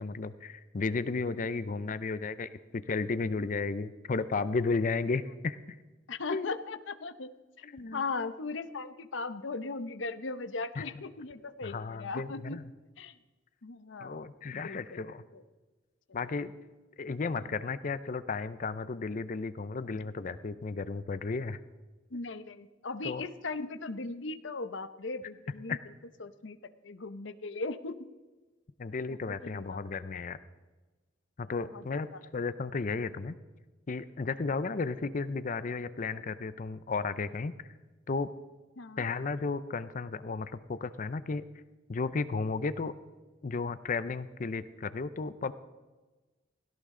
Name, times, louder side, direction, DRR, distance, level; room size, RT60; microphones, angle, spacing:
voice 1, 0.0-5.6 6.3-6.5 7.6-8.0 10.8-10.9 11.6-12.6 14.0-15.2 16.1-16.5 17.0-21.6 23.0-23.3 25.7-25.8 28.8-30.4 31.4-32.1 32.3-33.3 33.9-37.5 38.1-38.3 39.0-41.4 41.9-42.9 43.4-45.5, left 4 dB, 45° left, 14 dB, 0.5 m, -33 dB
voice 2, 6.1-7.3 7.9-12.6 13.0-13.2 13.6-14.2 14.5-15.4 17.3-17.5 22.1-25.8 26.2-26.6 26.8-28.0 29.1-29.8 30.1-30.2 31.6-32.2 38.8-39.0, left 3 dB, 75° left, 12 dB, 0.8 m, -38 dB
17.0 x 16.5 x 3.8 m, 1.2 s
head